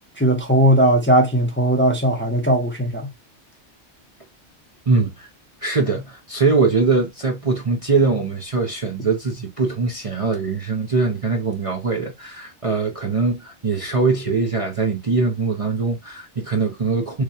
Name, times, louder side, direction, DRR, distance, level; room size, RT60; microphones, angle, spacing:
voice 1, 0.2-3.1, right 1 dB, 10° left, 0.8 m, -18 dB
voice 2, 4.9-5.3 5.6-17.2, right 4 dB, 30° right, 0.8 m, -22 dB
4.8 x 2.3 x 2.7 m
omnidirectional pair, 1.3 m